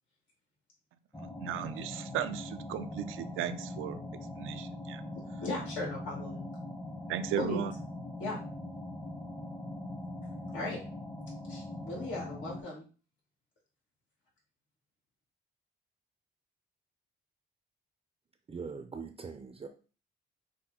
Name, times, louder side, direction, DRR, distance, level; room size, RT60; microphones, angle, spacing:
sound 1, 1.1-12.6, left 1 dB, 10° left, 0.8 m, -41 dB
voice 1, 1.2-4.0 4.4-5.0 7.1-7.7, right 10 dB, 85° right, 10 dB, 0.5 m, -36 dB
voice 2, 5.1-6.4 7.4-7.6 8.2-8.4 10.5-10.8 11.5-12.8, left 2 dB, 75° left, -3 dB, 2.0 m, -37 dB
voice 3, 18.5-19.7, right 5 dB, 30° right, 6 dB, 0.5 m, -42 dB
6.0 x 2.2 x 3.7 m, 0.37 s
cardioid pair, 90°, 20 cm